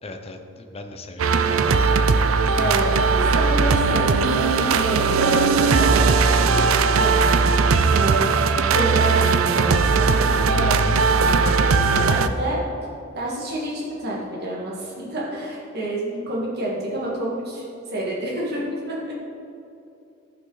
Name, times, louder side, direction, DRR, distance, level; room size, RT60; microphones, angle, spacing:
voice 1, 0.0-2.0, left 2 dB, 30° left, 5 dB, 0.8 m, -38 dB
sound 1, 1.2-12.3, right 4 dB, 80° right, 0.5 m, -18 dB
voice 2, 2.6-7.1 7.9-8.3 8.6-12.6 13.1-19.1, right 1 dB, 50° right, -5 dB, 2.0 m, -29 dB
14.0 x 5.8 x 4.0 m, 2.7 s
head